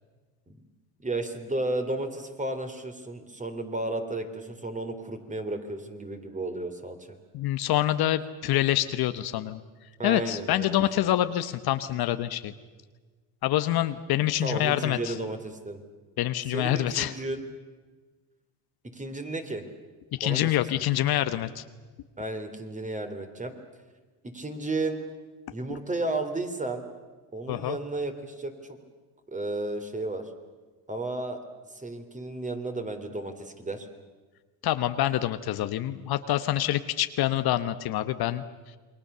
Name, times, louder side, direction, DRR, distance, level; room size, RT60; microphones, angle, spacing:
voice 1, 1.0-7.0 10.0-11.1 14.4-15.8 16.5-17.4 18.9-19.6 20.2-20.9 22.2-23.5 24.2-25.0 25.5-26.9 27.3-28.8 29.3-30.3 30.9-31.4 31.7-33.9, right 2 dB, 15° right, 7 dB, 3.5 m, -33 dB
voice 2, 7.3-9.6 10.0-12.5 13.4-15.1 16.2-17.1 20.2-21.6 27.5-27.8 34.6-38.4, left 13 dB, 55° left, 11 dB, 1.2 m, -26 dB
28.0 x 21.5 x 6.9 m, 1.4 s
supercardioid pair, 100°, 44 cm